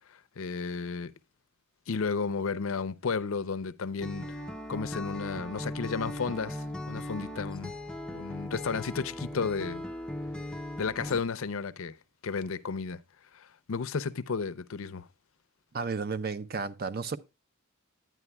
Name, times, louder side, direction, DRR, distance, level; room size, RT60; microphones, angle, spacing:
voice 1, 0.1-1.1 1.9-4.4 4.7-7.7 8.1-9.8 10.8-12.0 12.2-13.0 13.3-15.1, left 5 dB, 70° left, 0.6 m, -33 dB
sound 1, 3.6-6.7 7.0-10.6 11.6-12.1, right 1 dB, 65° right, 4.2 m, -62 dB
Acoustic guitar, 4.0-11.2, left 1 dB, 5° left, 0.5 m, -38 dB
voice 2, 15.7-17.2, right 4 dB, 45° right, 0.6 m, -33 dB
11.0 x 9.3 x 2.2 m
head